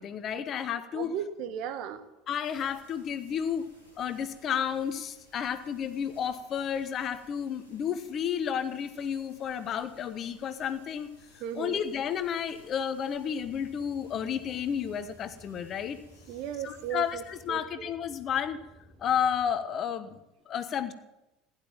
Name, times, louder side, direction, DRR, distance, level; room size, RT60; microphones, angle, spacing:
voice 1, 0.0-1.1 2.3-3.7 4.0-11.1 11.6-16.0 16.6-18.6 19.0-20.2 20.5-20.9, left 8 dB, 40° left, 11 dB, 1.2 m, -31 dB
voice 2, 0.9-2.0 11.4-11.8 16.3-17.2 17.5-17.9, right 8 dB, 50° right, 10 dB, 1.3 m, -35 dB
sound 1, 2.4-17.4, left 1 dB, 85° right, 6.6 m, -60 dB
sound 2, 13.4-19.5, equal, 15° right, 7.7 m, -56 dB
16.5 x 11.0 x 7.4 m, 0.96 s
figure-of-eight pair, 70°, 0 cm